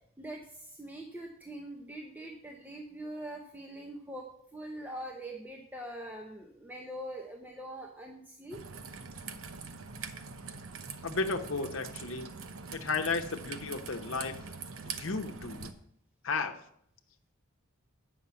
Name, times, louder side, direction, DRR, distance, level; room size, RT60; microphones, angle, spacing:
voice 1, 0.2-8.6, right 1 dB, 10° right, 0 dB, 0.7 m, -43 dB
Raindrop / Trickle dribble, 8.5-15.7, right 5 dB, 80° right, 0.8 m, -43 dB
voice 2, 11.0-12.3 12.7-14.4 14.8-15.7 16.2-16.6, left 4 dB, 70° left, 5 dB, 0.9 m, -34 dB
8.4 x 5.8 x 6.9 m, 0.71 s
head